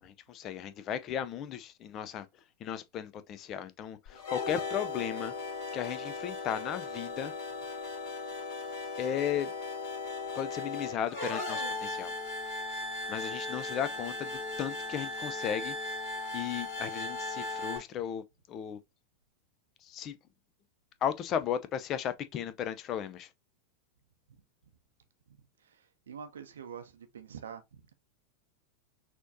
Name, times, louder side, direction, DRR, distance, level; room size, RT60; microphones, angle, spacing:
voice 1, 0.0-2.3 2.6-5.3 5.7-7.3 9.0-9.5 10.3-12.1 13.1-15.8 16.3-18.8 19.8-20.2 21.0-23.3, left 9 dB, 35° left, 0.4 m, -35 dB
sound 1, 4.1-17.8, left 3 dB, 50° left, 2.1 m, -37 dB
voice 2, 25.6-27.6, right 7 dB, 65° right, 0.6 m, -45 dB
6.1 x 2.9 x 2.6 m
figure-of-eight pair, 90°, 0 cm